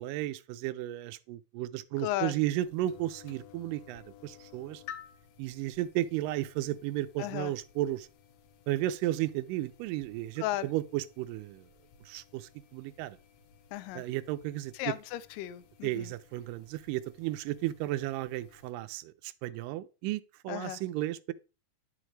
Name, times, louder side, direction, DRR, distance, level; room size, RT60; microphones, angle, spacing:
voice 1, 0.0-4.8 5.4-8.1 8.7-11.7 12.1-13.2 14.0-14.7 15.8-21.3, right 15 dB, 85° right, 2.2 m, -34 dB
voice 2, 2.0-2.4 7.2-7.5 10.4-10.7 13.7-14.1 14.7-16.1 20.5-20.8, left 14 dB, 85° left, 2.2 m, -35 dB
sound 1, 2.6-18.7, left 9 dB, 70° left, 2.0 m, -55 dB
9.8 x 6.1 x 3.2 m
omnidirectional pair, 3.8 m